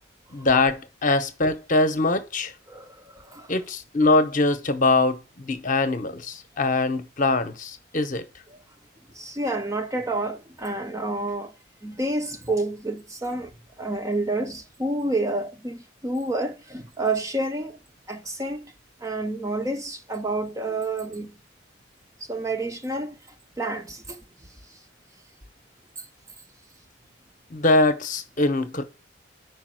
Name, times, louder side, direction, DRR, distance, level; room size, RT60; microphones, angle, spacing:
voice 1, 0.3-2.5 3.5-8.2 27.5-28.8, left 2 dB, 40° left, 0.8 m, -23 dB
voice 2, 2.7-3.5 8.5-8.6 9.1-11.5 11.8-13.5 13.8-17.8 18.1-18.7 19.0-21.4 22.2-23.1 23.6-24.2 24.7-24.8 26.0-26.1, right 2 dB, 15° right, 0.5 m, -29 dB
5.1 x 4.8 x 6.2 m
head